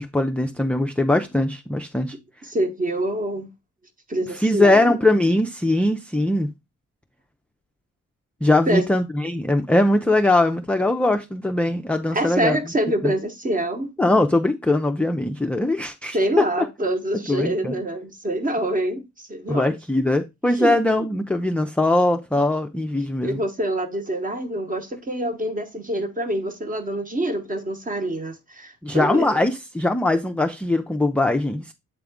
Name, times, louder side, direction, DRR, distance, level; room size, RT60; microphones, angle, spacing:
voice 1, 0.0-2.1 4.4-6.5 8.4-12.6 13.0-13.1 14.0-16.7 17.3-17.7 19.5-23.4 28.8-31.7, left 2 dB, 5° left, 0.3 m, -21 dB
voice 2, 2.4-3.5 4.1-5.0 8.7-8.9 12.1-13.9 16.1-19.0 19.3-19.7 20.5-20.8 23.2-29.5, right 1 dB, 25° right, 1.0 m, -26 dB
7.8 x 3.6 x 3.5 m
cardioid pair, 110°, 31 cm